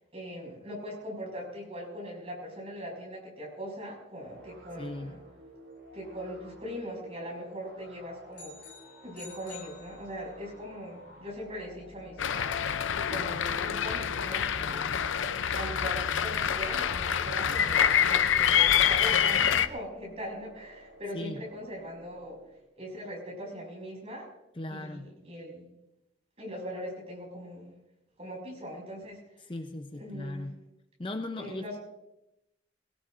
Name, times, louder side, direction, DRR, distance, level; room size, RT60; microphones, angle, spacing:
voice 1, 0.0-5.2 5.9-8.5 9.0-12.5 12.9-14.9 15.5-22.4 22.8-24.3 24.7-25.7 26.4-27.7 28.2-29.2 30.0-30.4 31.4-31.7, equal, 30° right, -2 dB, 6.0 m, -40 dB
sound 1, 4.2-22.6, equal, 70° right, 6.1 m, -52 dB
voice 2, 4.8-5.1 21.1-21.4 24.6-25.1 29.4-30.6 31.0-31.8, left 2 dB, 25° left, 6 dB, 0.6 m, -38 dB
sound 2, 8.3-10.5, left 4 dB, 65° left, 4.9 m, -50 dB
sound 3, 12.2-19.7, left 8 dB, 85° left, 0.6 m, -26 dB
21.5 x 17.5 x 2.6 m, 0.88 s
head